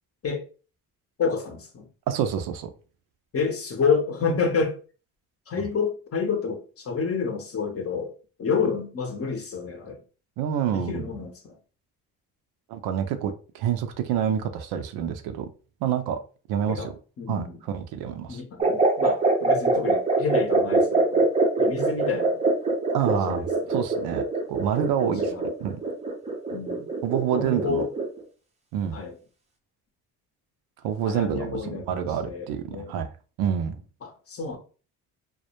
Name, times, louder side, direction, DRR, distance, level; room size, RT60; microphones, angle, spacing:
voice 1, 1.2-1.9 3.3-4.7 5.5-8.1 8.4-10.0 10.7-11.6 16.7-16.9 17.2-17.6 18.3-21.3 21.6-22.4 23.1-23.7 25.0-25.4 26.5-26.9 27.3-27.9 28.9-29.2 31.0-32.9 34.0-34.6, left 5 dB, 35° left, 0.7 m, -29 dB
voice 2, 2.1-2.7 10.4-11.1 12.7-15.5 15.8-16.2 16.5-16.9 17.3-18.4 22.9-23.4 23.7-25.3 25.6-25.8 27.0-27.8 28.7-29.0 30.8-33.1 33.4-33.8, right 9 dB, 65° right, 0.5 m, -27 dB
sound 1, 18.6-28.2, right 3 dB, 15° right, 0.5 m, -23 dB
2.1 x 2.1 x 2.8 m
supercardioid pair, 65°, 41 cm